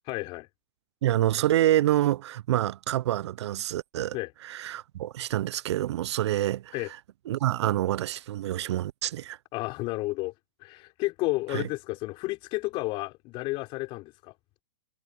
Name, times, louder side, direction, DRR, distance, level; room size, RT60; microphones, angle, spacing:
voice 1, 0.1-0.5 4.1-4.3 6.7-6.9 9.5-10.3 10.6-14.3, left 21 dB, 35° left, 4.5 m, -31 dB
voice 2, 1.0-4.2 4.4-6.7 7.3-9.4 11.5-11.6, right 13 dB, 65° right, 0.4 m, -27 dB
hypercardioid pair, 140°, 15 cm